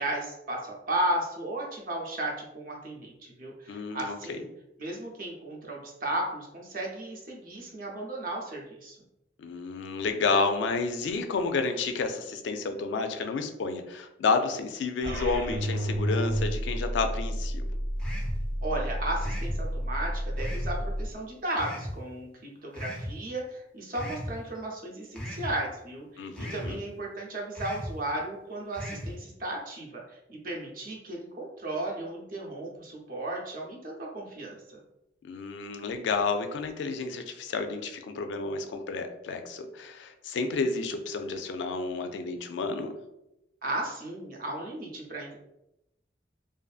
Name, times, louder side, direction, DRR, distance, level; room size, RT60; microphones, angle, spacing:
voice 1, 0.0-3.1 3.4-4.5 4.8-9.0 18.6-34.8 43.6-45.4, right 1 dB, 50° right, -1 dB, 0.6 m, -35 dB
voice 2, 3.7-4.4 9.4-17.7 26.2-26.8 35.2-42.9, left 4 dB, 80° left, 7 dB, 0.3 m, -30 dB
sound 1, 15.0-21.1, equal, 90° right, 0.8 m, -31 dB
sound 2, 18.0-18.4 19.2-19.6 20.4-20.7 21.6-21.9 22.7-23.1 24.0-24.3 25.2-25.5 26.4-26.7 27.5-27.9 28.7-29.1, equal, 5° left, 0.3 m, -37 dB
2.5 x 2.5 x 2.3 m, 0.87 s
head